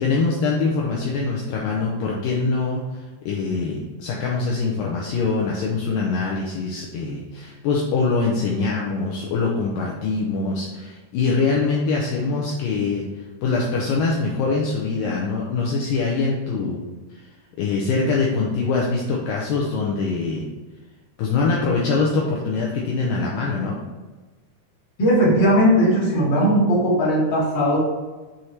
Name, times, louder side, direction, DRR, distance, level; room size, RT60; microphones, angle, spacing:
voice 1, 0.0-13.0 13.4-16.8 17.1-17.3 17.6-20.5 21.2-23.8, left 4 dB, 80° left, -2 dB, 2.1 m, -23 dB
voice 2, 25.0-27.8, equal, 35° left, -7 dB, 2.1 m, -18 dB
6.5 x 4.2 x 4.5 m, 1.2 s
omnidirectional pair, 4.6 m